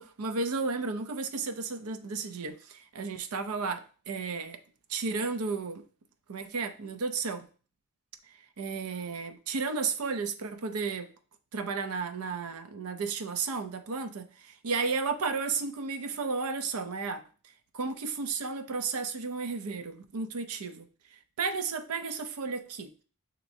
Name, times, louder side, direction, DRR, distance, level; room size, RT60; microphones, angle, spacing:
voice 1, 0.0-4.6 4.9-5.8 6.3-7.5 8.6-11.1 11.5-17.2 17.7-20.9 21.4-23.0, right 4 dB, 85° right, 0.6 m, -33 dB
7.0 x 2.9 x 2.6 m
head